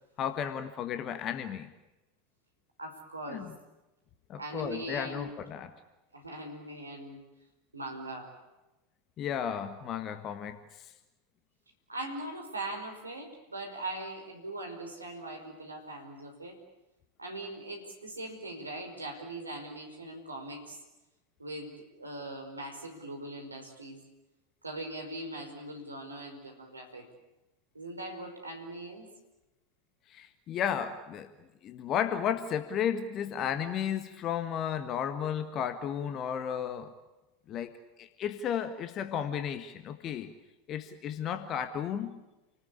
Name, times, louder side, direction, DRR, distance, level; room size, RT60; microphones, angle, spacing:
voice 1, 0.2-1.7 3.3-3.5 4.3-5.7 9.2-10.9 30.1-31.3 31.6-36.9 37.5-40.3 40.7-42.2, left 8 dB, 35° left, 9 dB, 1.6 m, -33 dB
voice 2, 2.8-3.5 4.4-5.4 6.1-7.2 7.7-8.3 11.9-16.5 17.2-20.8 21.4-24.0 24.6-27.1 27.7-29.1, right 2 dB, 85° right, 3 dB, 5.2 m, -41 dB
29.5 x 19.5 x 8.5 m, 1.0 s
figure-of-eight pair, 85°, 0 cm